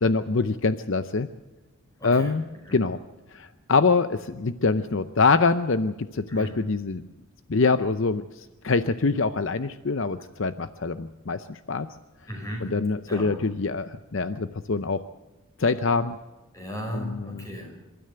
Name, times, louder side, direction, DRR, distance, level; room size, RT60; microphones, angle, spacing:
voice 1, 0.0-1.3 2.0-2.4 2.7-3.0 3.3-7.0 7.5-11.9 12.6-15.0 15.6-16.2 16.9-17.5, left 4 dB, 60° left, 11 dB, 0.6 m, -24 dB
voice 2, 2.0-2.4 2.7-2.8 6.3-6.6 12.3-12.8 13.1-13.3 16.5-17.7, equal, 15° left, 2 dB, 5.2 m, -35 dB
26.5 x 13.0 x 7.9 m, 1.1 s
head